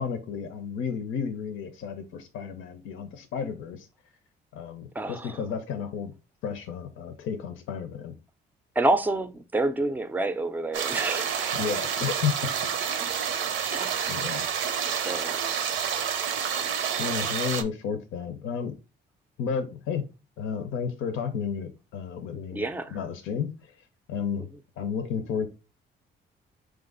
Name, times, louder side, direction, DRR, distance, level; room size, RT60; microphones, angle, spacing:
voice 1, 0.0-3.9 4.5-6.1 6.4-8.1 11.5-12.5 14.1-14.5 17.0-18.8 19.4-20.0 20.4-22.7 22.9-23.7 24.1-24.5 24.8-25.5, left 7 dB, 85° left, 0.6 m, -32 dB
voice 2, 4.9-5.4 8.8-11.6 13.7-14.1 14.9-15.4 22.5-23.0, right 2 dB, 10° right, 0.4 m, -28 dB
sound 1, 10.7-17.6, right 8 dB, 80° right, 0.6 m, -29 dB
4.7 x 2.4 x 3.7 m
cardioid pair, 90°, 20 cm